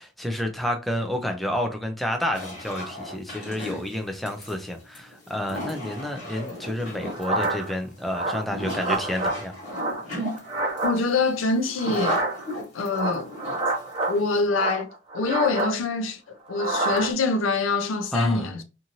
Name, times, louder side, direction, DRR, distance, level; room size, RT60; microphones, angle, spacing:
voice 1, 0.0-9.5 18.1-18.5, left 1 dB, ahead, 0.3 m, -29 dB
sound 1, 2.3-14.5, equal, 40° left, 1.3 m, -36 dB
sound 2, 7.0-7.7 8.1-9.4 9.7-11.0 11.8-12.5 12.9-14.2 14.5-15.7 16.5-17.1, right 2 dB, 25° right, 0.7 m, -28 dB
voice 2, 10.8-12.2 12.7-13.3 14.1-14.9 15.1-18.6, left 3 dB, 90° left, 0.5 m, -25 dB
2.7 x 2.5 x 2.8 m
head